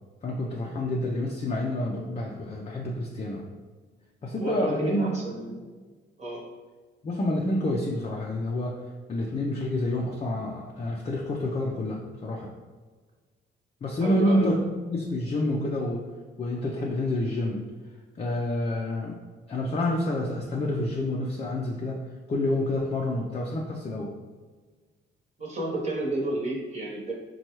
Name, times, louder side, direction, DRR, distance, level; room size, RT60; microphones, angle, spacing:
voice 1, 0.2-3.4 4.2-5.1 5.5-5.6 7.0-8.7 9.1-12.5 13.8-16.0 16.4-17.6 18.2-19.2 19.5-22.0 22.3-24.1, left 1 dB, 30° left, -2 dB, 0.5 m, -28 dB
voice 2, 4.4-5.7 6.2-6.5 14.0-14.6 25.4-27.1, right 2 dB, 35° right, -3 dB, 1.0 m, -31 dB
4.2 x 2.3 x 3.0 m, 1.4 s
cardioid pair, 90°, 20 cm